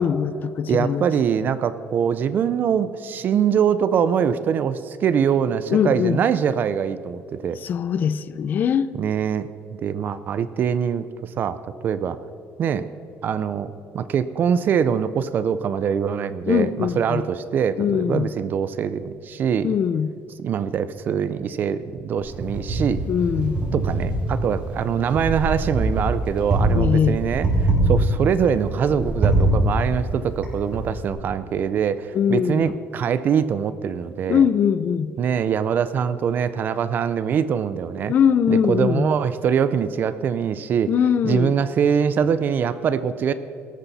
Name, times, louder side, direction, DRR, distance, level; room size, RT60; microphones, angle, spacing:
voice 1, 0.0-1.1 5.7-6.2 7.6-8.9 16.5-17.2 17.8-18.3 19.6-20.1 23.1-23.6 26.7-27.2 32.1-32.6 34.3-35.1 38.1-39.1 40.9-41.5, left 8 dB, 40° left, 15 dB, 0.5 m, -21 dB
voice 2, 0.7-7.6 8.9-9.5 9.8-11.6 11.8-12.2 12.6-12.9 13.2-19.8 20.4-23.0 23.7-34.4 35.2-38.1 38.5-40.9 41.2-43.3, right 7 dB, 45° right, 13 dB, 0.5 m, -23 dB
Wind, 22.2-31.1, right 1 dB, 25° right, 4.1 m, -24 dB
18.0 x 13.5 x 4.2 m, 2.5 s
cardioid pair, 160°, 5 cm